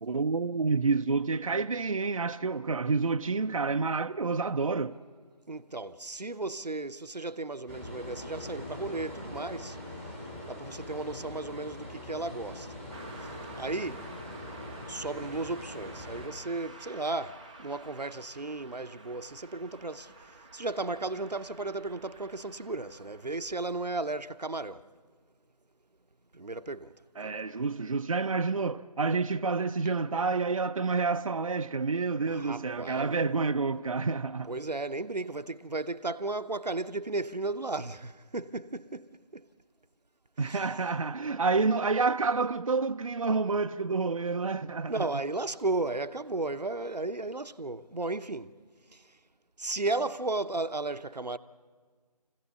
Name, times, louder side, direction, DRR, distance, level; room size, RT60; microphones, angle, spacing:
voice 1, 0.0-5.0 27.2-34.5 40.4-45.2, right 4 dB, 55° right, 0.5 m, -29 dB
voice 2, 5.5-9.8 10.5-12.7 13.6-14.0 14.9-24.9 26.3-26.9 27.2-27.3 32.3-33.2 34.5-39.5 40.4-40.7 44.9-48.6 48.9-49.0 49.6-51.4, right 2 dB, 85° right, 0.8 m, -34 dB
sound 1, 7.7-16.3, left 1 dB, 10° left, 1.6 m, -42 dB
Car passing by, 12.9-24.3, right 2 dB, 10° right, 0.6 m, -50 dB
25.5 x 16.0 x 7.0 m
figure-of-eight pair, 155°, 20 cm